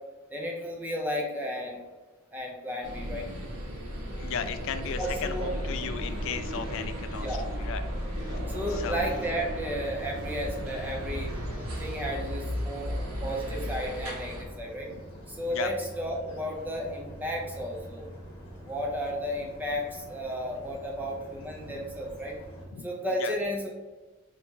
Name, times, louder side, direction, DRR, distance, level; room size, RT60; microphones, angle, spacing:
voice 1, 0.3-1.8 2.3-3.2 5.0-5.5 7.2-7.5 8.5-11.3 11.8-14.9 15.3-18.1 18.6-22.4 22.8-23.7, equal, 10° right, 0 dB, 0.4 m, -33 dB
sound 1, 2.8-14.4, equal, 75° right, 1.1 m, -35 dB
voice 2, 4.2-7.8 8.2-8.4 8.7-9.0 10.6-10.7 15.5-15.7 21.6-21.7 22.7-22.9 23.2-23.3, left 6 dB, 60° left, 10 dB, 0.3 m, -35 dB
sound 2, 4.5-22.6, equal, 25° left, 1.3 m, -46 dB
3.4 x 2.7 x 4.5 m, 1.2 s
head